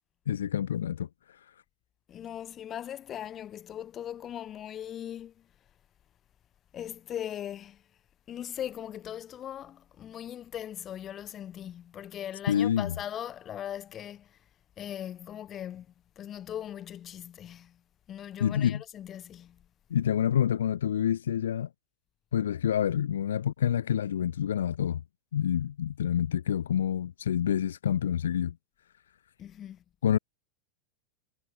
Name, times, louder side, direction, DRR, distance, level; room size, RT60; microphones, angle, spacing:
voice 1, 0.3-1.1 12.5-13.0 18.4-18.8 19.9-21.7 22.3-25.0 25.3-28.5 30.0-30.2, left 9 dB, 65° left, 1.3 m, -27 dB
voice 2, 2.1-5.4 6.7-7.8 8.3-14.4 14.8-15.9 16.2-17.8 18.1-19.6 29.4-29.8, left 10 dB, 30° left, 2.8 m, -39 dB
figure-of-eight pair, 90°, 0 cm